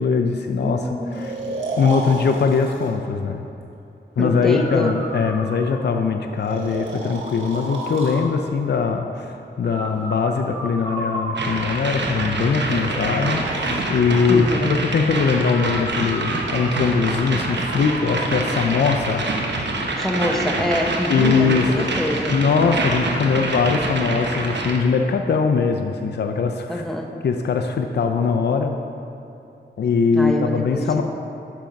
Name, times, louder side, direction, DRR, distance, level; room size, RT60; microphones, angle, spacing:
voice 1, 0.0-0.8 1.1-1.3 1.8-3.4 4.2-19.6 21.1-21.9 22.3-26.8 27.2-28.7 29.8-31.0, left 5 dB, 60° left, 5 dB, 0.5 m, -21 dB
voice 2, 0.6-1.3 4.2-5.0 14.3-14.8 19.9-22.4 26.7-27.1 30.1-31.0, equal, ahead, 2 dB, 0.9 m, -25 dB
Breathing, 1.1-2.9 4.2-5.9 6.4-8.2 9.6-11.9 12.7-13.8 15.5-18.3, right 2 dB, 85° right, 1.5 m, -32 dB
sound 1, 11.4-24.8, right 2 dB, 65° right, 1.0 m, -26 dB
7.4 x 5.8 x 5.2 m, 2.8 s
cardioid pair, 65°, 20 cm